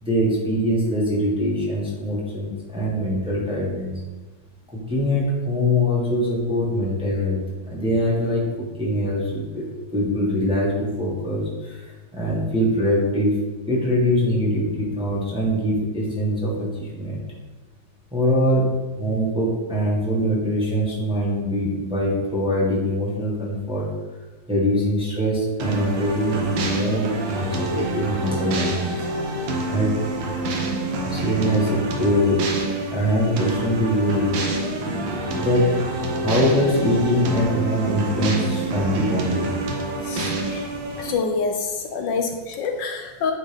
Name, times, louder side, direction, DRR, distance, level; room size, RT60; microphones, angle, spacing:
voice 1, 0.0-4.0 4.7-13.3 13.7-17.2 18.1-18.7 18.9-23.9 24.5-28.9 29.7-29.9 31.1-32.4 32.9-34.3 34.8-35.0 35.3-35.7 36.2-39.5, equal, 5° right, -5 dB, 1.2 m, -23 dB
sound 1, 25.6-41.1, right 2 dB, 75° right, 1.6 m, -27 dB
voice 2, 40.0-40.6 41.0-43.3, left 4 dB, 75° left, 4 dB, 1.2 m, -26 dB
8.8 x 3.8 x 3.5 m, 1.2 s
omnidirectional pair, 2.1 m